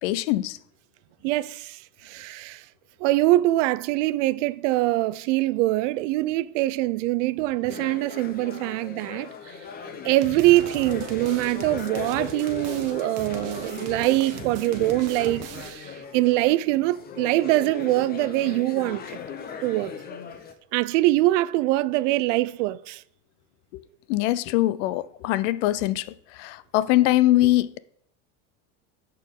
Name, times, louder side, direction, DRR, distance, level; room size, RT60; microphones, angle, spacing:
voice 1, 0.0-0.6 23.7-23.8 24.1-27.8, left 15 dB, 70° left, 0.6 m, -23 dB
voice 2, 1.2-2.6 3.0-9.5 10.0-19.2 19.6-19.9 20.7-23.0, right 17 dB, 75° right, 0.5 m, -23 dB
sound 1, 7.7-20.5, left 6 dB, 25° left, 0.7 m, -38 dB
sound 2, 10.2-16.0, right 10 dB, 40° right, 0.8 m, -40 dB
13.5 x 4.5 x 3.7 m
supercardioid pair, 140°, 37 cm